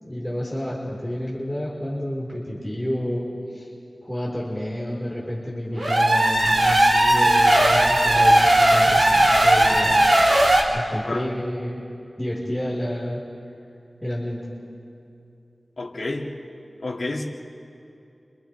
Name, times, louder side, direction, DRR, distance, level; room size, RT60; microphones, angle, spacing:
voice 1, 0.0-3.2 3.5-3.7 4.0-10.1 10.7-11.8 12.2-13.2 14.0-14.5, equal, 5° left, -7 dB, 4.5 m, -29 dB
sound 1, 5.7-10.6, right 1 dB, 70° right, 3.7 m, -17 dB
voice 2, 15.8-16.3 16.8-17.2, left 2 dB, 70° left, -2 dB, 2.3 m, -29 dB
30.0 x 27.0 x 3.5 m, 2.6 s
wide cardioid pair, 80°, 0 cm